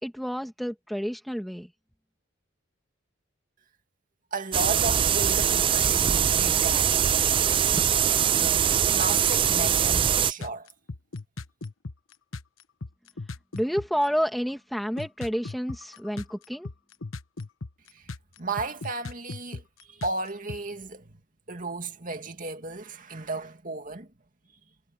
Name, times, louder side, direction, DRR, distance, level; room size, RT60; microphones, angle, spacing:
voice 1, 0.0-1.7 13.5-16.7, equal, ahead, 1.6 m, -29 dB
voice 2, 4.3-7.1 8.1-10.7 17.9-18.1 18.4-21.2 21.5-24.1, right 3 dB, 40° right, 2.4 m, -34 dB
sound 1, 4.5-10.3, right 8 dB, 25° right, 0.3 m, -22 dB
sound 2, 10.4-14.0 14.5-14.6 15.0-20.6, left 3 dB, 75° left, 1.1 m, -37 dB
head